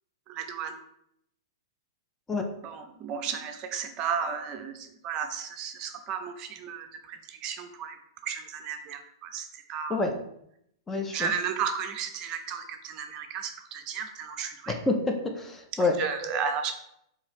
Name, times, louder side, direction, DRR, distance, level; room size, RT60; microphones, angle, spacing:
voice 1, 0.3-0.8 2.6-8.0 8.2-9.9 11.1-14.7 16.0-16.7, right 7 dB, 35° right, 6 dB, 0.5 m, -34 dB
voice 2, 10.9-11.3 14.7-15.9, left 3 dB, 15° left, 4 dB, 0.5 m, -28 dB
4.0 x 2.7 x 3.0 m, 0.75 s
hypercardioid pair, 135°, 2 cm